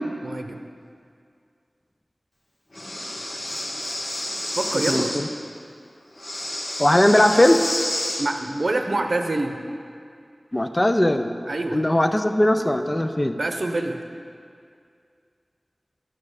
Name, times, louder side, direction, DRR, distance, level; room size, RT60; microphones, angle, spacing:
voice 1, 0.2-0.7 4.6-5.2 8.2-9.6 11.5-11.8 13.4-14.0, right 2 dB, 65° right, 5 dB, 0.7 m, -26 dB
Breathing, 2.7-5.2 6.2-8.3, left 1 dB, 50° left, 1.3 m, -29 dB
voice 2, 4.9-5.3 6.8-7.6 10.5-11.3 11.7-13.4, left 1 dB, 25° left, 6 dB, 0.5 m, -19 dB
12.0 x 6.7 x 4.9 m, 2.3 s
wide cardioid pair, 55°, 0 cm